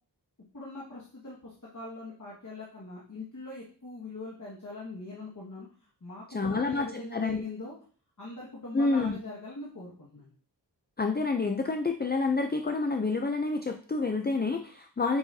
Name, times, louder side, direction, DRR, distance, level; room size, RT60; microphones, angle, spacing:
voice 1, 0.5-7.7 8.2-10.3, left 3 dB, 45° left, -6 dB, 1.8 m, -42 dB
voice 2, 6.3-7.4 8.7-9.2 11.0-15.2, left 3 dB, 25° left, 5 dB, 0.5 m, -28 dB
7.1 x 5.7 x 2.8 m, 0.43 s
wide cardioid pair, 65°, 41 cm